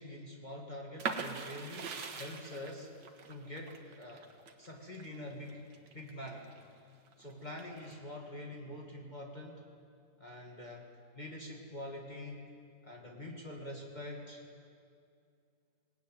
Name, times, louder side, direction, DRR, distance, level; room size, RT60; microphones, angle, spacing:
voice 1, 0.0-2.9 3.3-4.3 4.6-5.6 5.9-6.5 7.2-9.6 10.2-10.9 11.1-12.5 12.8-14.4, left 1 dB, 25° left, -1 dB, 2.3 m, -45 dB
sound 1, 1.0-6.6 7.1-7.9, right 5 dB, 80° right, 2.0 m, -42 dB
20.0 x 19.5 x 9.4 m, 2.3 s
omnidirectional pair, 1.9 m